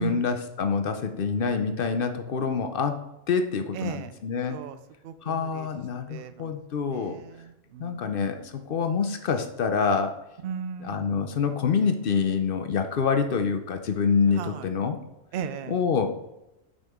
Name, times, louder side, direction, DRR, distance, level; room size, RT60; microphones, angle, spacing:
voice 1, 0.0-3.0 3.3-4.6 5.2-7.2 7.8-10.2 10.8-15.0 15.7-16.1, left 5 dB, 55° left, 7 dB, 0.6 m, -26 dB
voice 2, 3.7-4.1 4.5-4.8 5.0-5.7 6.1-6.5 6.9-8.0 10.4-11.0 14.4-14.7 15.3-15.8, right 7 dB, 60° right, 12 dB, 0.6 m, -36 dB
6.4 x 5.2 x 3.6 m, 0.91 s
omnidirectional pair, 1.4 m